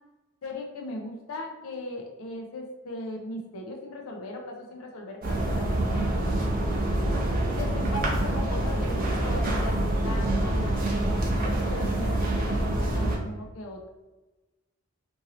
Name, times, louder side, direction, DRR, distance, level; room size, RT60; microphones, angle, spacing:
voice 1, 0.4-6.3 7.6-13.9, left 1 dB, 85° left, 1 dB, 0.5 m, -38 dB
sound 1, 5.2-13.2, right 1 dB, 40° right, 0.6 m, -26 dB
2.7 x 2.6 x 2.9 m, 1.1 s
head